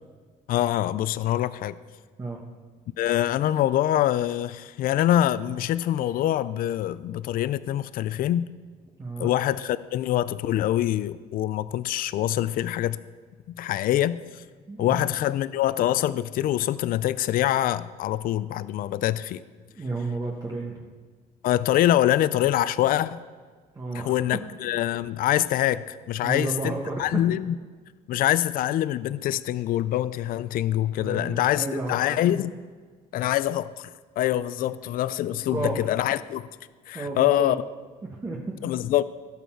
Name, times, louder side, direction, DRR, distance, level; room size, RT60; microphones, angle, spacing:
voice 1, 0.5-1.7 3.0-8.5 9.2-13.0 13.6-14.4 14.8-19.4 21.4-23.2 23.9-26.7 27.0-27.5 28.1-32.5 33.1-33.9 34.2-36.4 36.9-37.6 38.6-39.0, left 13 dB, 60° left, 0.4 m, -24 dB
voice 2, 9.0-9.3 14.7-15.0 19.7-20.8 23.7-24.4 26.2-27.2 31.0-32.2 35.5-35.9 36.9-37.6 38.0-38.7, right 2 dB, 20° right, 1.3 m, -32 dB
17.0 x 6.8 x 4.5 m
cardioid pair, 110°, 17 cm